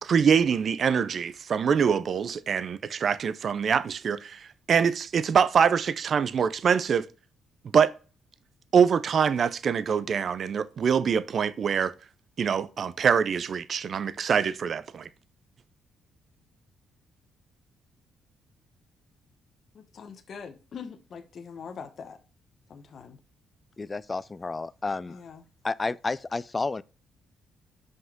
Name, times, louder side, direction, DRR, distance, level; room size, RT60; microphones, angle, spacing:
voice 1, 0.0-7.0 7.7-7.9 8.7-11.9 12.4-15.1, right 7 dB, 50° right, 0.5 m, -24 dB
voice 2, 19.7-22.2 22.7-23.2 25.1-25.4, left 6 dB, 55° left, 1.0 m, -43 dB
voice 3, 23.8-25.2 25.6-26.8, left 3 dB, 25° left, 0.3 m, -31 dB
5.6 x 5.4 x 3.6 m
cardioid pair, 85°, 0 cm